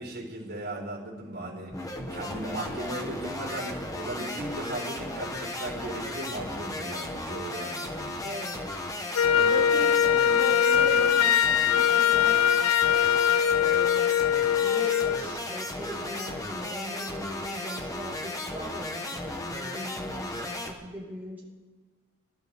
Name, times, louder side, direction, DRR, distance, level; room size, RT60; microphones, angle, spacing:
voice 1, 0.0-8.2, right 1 dB, 50° right, -3 dB, 4.4 m, -37 dB
sound 1, 1.7-20.7, left 1 dB, 15° left, 1.2 m, -35 dB
voice 2, 8.2-8.7 9.3-12.5 13.5-14.1 14.4-21.4, equal, 10° right, -7 dB, 5.1 m, -39 dB
Wind instrument woodwind instrument, 9.1-15.2, left 9 dB, 75° left, 0.4 m, -22 dB
21.5 x 12.5 x 3.6 m, 1.3 s
head